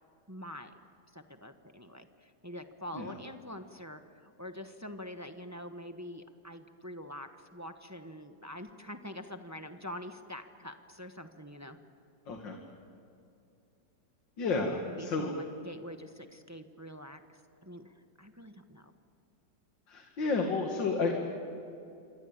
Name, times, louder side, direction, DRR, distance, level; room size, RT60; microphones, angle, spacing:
voice 1, 0.3-0.7 1.1-11.8 14.8-18.9, left 1 dB, 10° right, 7 dB, 0.9 m, -45 dB
voice 2, 12.3-12.6 14.4-15.3 19.9-21.1, left 3 dB, 85° left, 2 dB, 2.7 m, -31 dB
27.5 x 24.0 x 8.9 m, 2.6 s
omnidirectional pair, 2.0 m